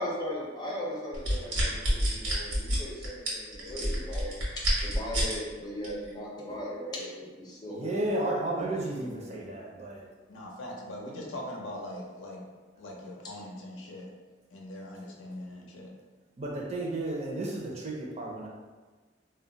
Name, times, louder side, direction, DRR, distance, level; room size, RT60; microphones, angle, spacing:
voice 1, 0.0-4.3 4.8-8.1 8.5-9.5, left 1 dB, 20° left, -5 dB, 0.6 m, -38 dB
sound 1, 1.1-5.4 5.8-6.1, equal, 85° right, 1.0 m, -28 dB
voice 2, 7.7-10.1 16.4-18.5, right 1 dB, 35° right, -2 dB, 0.4 m, -33 dB
voice 3, 10.3-12.4 12.8-14.1 14.5-15.9, left 1 dB, 85° left, -2 dB, 0.6 m, -41 dB
2.2 x 2.0 x 3.7 m, 1.3 s
head